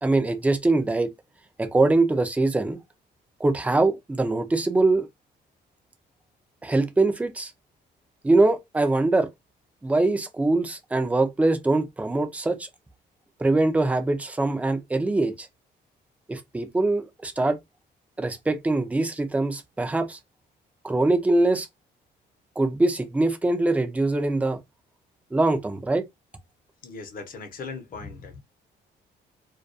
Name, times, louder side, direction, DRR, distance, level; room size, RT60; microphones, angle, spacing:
voice 1, 0.0-1.1 1.6-2.8 3.4-5.1 6.6-7.5 8.2-9.3 9.8-12.7 13.4-15.5 16.3-17.6 18.2-20.2 20.8-21.7 22.6-24.6 25.3-26.0, right 2 dB, 10° right, 0.4 m, -23 dB
voice 2, 26.8-28.4, left 4 dB, 50° left, 0.7 m, -38 dB
2.3 x 2.2 x 2.5 m
cardioid pair, 140°, 18 cm